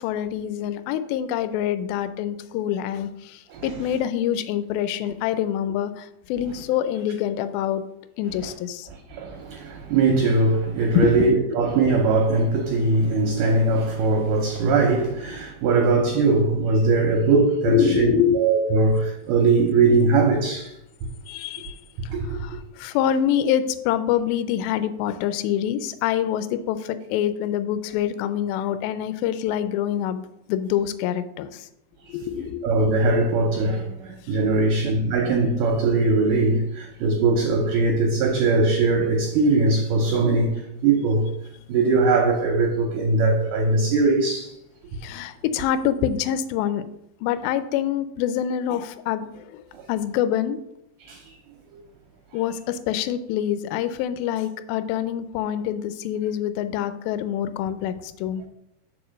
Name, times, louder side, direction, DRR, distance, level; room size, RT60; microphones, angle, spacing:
voice 1, 0.0-7.8 8.2-8.9 11.0-11.3 16.7-16.9 17.6-18.4 21.3-21.8 22.3-31.7 32.1-32.7 45.0-46.8 47.2-49.6 49.9-50.6 52.3-58.4, left 10 dB, 80° left, 2.2 m, -25 dB
voice 2, 8.9-20.7 22.1-22.4 32.6-41.3 41.7-44.5 49.7-49.8 51.0-51.2, right 3 dB, 75° right, 2.0 m, -21 dB
5.0 x 4.8 x 6.3 m
omnidirectional pair, 4.5 m